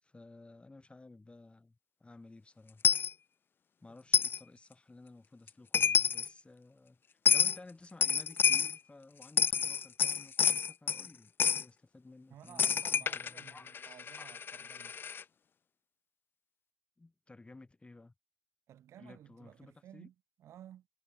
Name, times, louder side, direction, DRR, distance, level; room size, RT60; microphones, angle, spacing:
voice 1, 0.0-2.8 3.8-14.3 17.0-18.1 19.0-20.1, left 2 dB, 25° left, 4.2 m, -55 dB
Coin (dropping), 2.8-3.1 4.1-4.4 5.5-5.6 5.7-6.3 7.2-7.6 8.0-8.8 9.2-11.1 11.4-11.6 12.6-15.2, left 7 dB, 50° left, 0.4 m, -28 dB
voice 2, 12.3-15.0 18.7-20.9, right 11 dB, 80° right, 3.5 m, -55 dB
cardioid pair, 65°, 5 cm